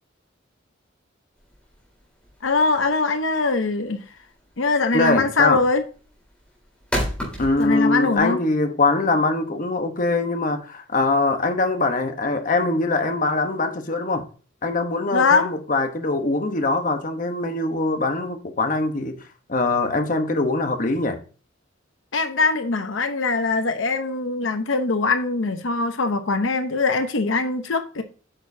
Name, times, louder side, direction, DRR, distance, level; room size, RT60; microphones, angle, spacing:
sound 1, 1.4-8.2, equal, 5° left, 3.8 m, -32 dB
voice 1, 2.4-4.0 4.6-5.8 7.6-8.4 15.1-15.5 22.1-28.0, left 3 dB, 80° left, 0.8 m, -22 dB
voice 2, 4.9-5.6 7.4-14.3 14.6-19.2 19.5-21.2, left 2 dB, 45° left, 1.1 m, -22 dB
8.9 x 6.4 x 2.7 m
head